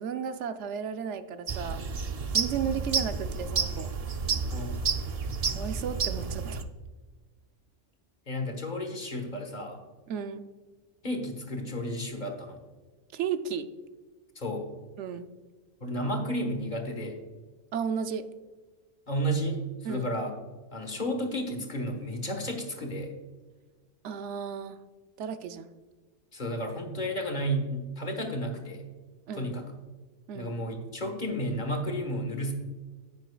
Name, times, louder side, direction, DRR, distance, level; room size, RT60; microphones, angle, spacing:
voice 1, 0.0-1.8 2.3-3.9 5.5-6.6 10.1-10.5 13.1-13.7 15.0-15.3 17.7-18.2 19.8-20.1 24.0-24.8 25.2-25.7 29.3-29.5 30.3-30.5, right 7 dB, 80° right, 9 dB, 0.9 m, -34 dB
sound 1, 1.5-6.6, right 5 dB, 45° right, 0.5 m, -30 dB
voice 2, 4.5-4.9 8.3-9.8 11.0-12.6 14.3-14.7 15.8-17.1 19.1-19.6 19.9-20.3 20.7-23.1 26.3-28.8 29.3-29.6 30.3-32.5, equal, 40° left, 4 dB, 1.5 m, -32 dB
10.5 x 9.0 x 2.3 m, 1.4 s
omnidirectional pair, 1.2 m